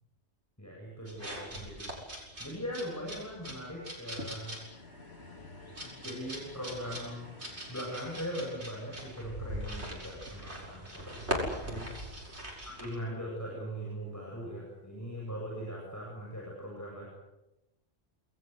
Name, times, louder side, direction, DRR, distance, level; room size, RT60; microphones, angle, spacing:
voice 1, 0.6-1.9 2.4-4.6 5.8-7.3 7.7-11.9 12.6-17.1, equal, 15° left, -3 dB, 8.0 m, -40 dB
sound 1, 1.1-12.9, equal, 80° right, 8.0 m, -41 dB
sound 2, 4.2-14.7 15.3-15.4, left 3 dB, 70° left, 3.1 m, -53 dB
29.5 x 21.5 x 8.4 m, 0.98 s
omnidirectional pair, 1.1 m